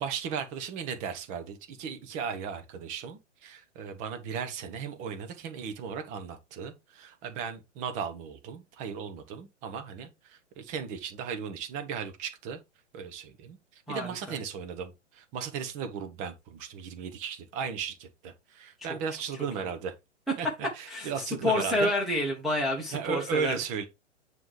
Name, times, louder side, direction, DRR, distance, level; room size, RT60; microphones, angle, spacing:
voice 1, 0.0-12.6 12.9-19.9 20.4-20.5 20.8-21.9 22.9-23.9, right 6 dB, 20° right, 1.0 m, -36 dB
voice 2, 13.9-14.4 18.8-19.0 20.9-23.6, left 1 dB, ahead, 1.3 m, -29 dB
9.2 x 3.3 x 4.7 m
figure-of-eight pair, 115°, 36 cm